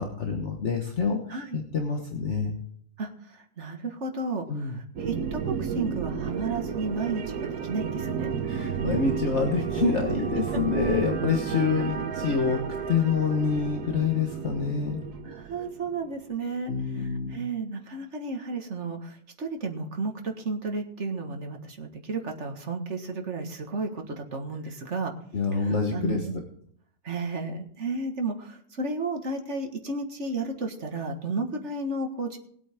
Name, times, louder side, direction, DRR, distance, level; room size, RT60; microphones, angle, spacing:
voice 1, 0.0-2.5 4.5-4.8 8.4-15.0 16.7-17.4 25.3-26.3, left 5 dB, 50° left, 2 dB, 1.6 m, -27 dB
voice 2, 1.3-1.6 3.0-8.3 15.2-25.1 25.5-26.3 27.0-32.4, right 3 dB, 50° right, 3 dB, 2.0 m, -33 dB
sound 1, 5.0-16.3, right 7 dB, 85° right, 1.5 m, -32 dB
19.5 x 8.3 x 3.7 m, 0.63 s
omnidirectional pair, 1.6 m